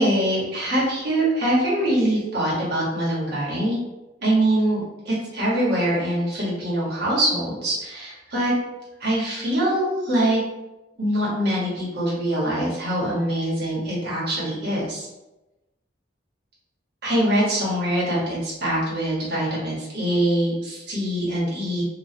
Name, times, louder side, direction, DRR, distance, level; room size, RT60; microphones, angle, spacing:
voice 1, 0.0-3.8 4.2-8.5 9.0-10.4 11.0-15.1 17.0-21.8, right 1 dB, 60° right, -7 dB, 1.4 m, -23 dB
3.0 x 2.6 x 2.8 m, 1.0 s
head